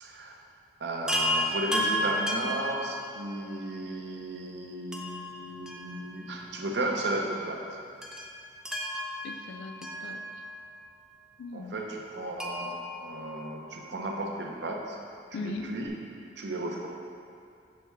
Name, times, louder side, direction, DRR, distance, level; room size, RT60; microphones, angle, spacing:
voice 1, 0.0-0.4 0.8-7.8 11.5-15.0 15.3-16.0 16.4-16.9, right 1 dB, 75° right, 0 dB, 0.7 m, -34 dB
Chime, 1.1-3.5 4.9-6.5 6.7-6.8 8.0-10.7 12.4-14.0 15.6-15.7 15.9-16.0, equal, 5° right, 0.4 m, -33 dB
voice 2, 9.2-10.4 11.4-11.8 15.3-15.8, left 3 dB, 85° left, 6 dB, 0.4 m, -39 dB
7.6 x 4.2 x 3.5 m, 2.4 s
head